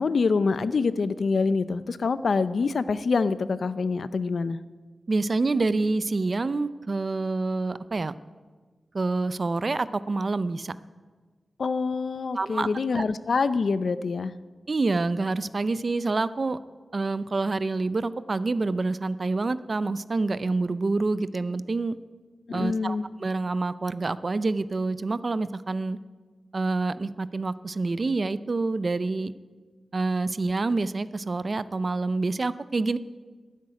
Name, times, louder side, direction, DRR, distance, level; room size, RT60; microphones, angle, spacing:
voice 1, 0.0-4.6 11.6-14.3 22.5-23.1, left 4 dB, 65° left, 14 dB, 0.6 m, -25 dB
voice 2, 5.1-8.1 8.9-10.7 12.3-12.7 13.0-13.1 14.7-16.6 16.9-22.0 22.5-26.0 26.5-29.3 29.9-33.0, right 3 dB, 40° right, 15 dB, 0.5 m, -27 dB
12.5 x 10.5 x 9.6 m, 1.4 s
wide cardioid pair, 145°, 0 cm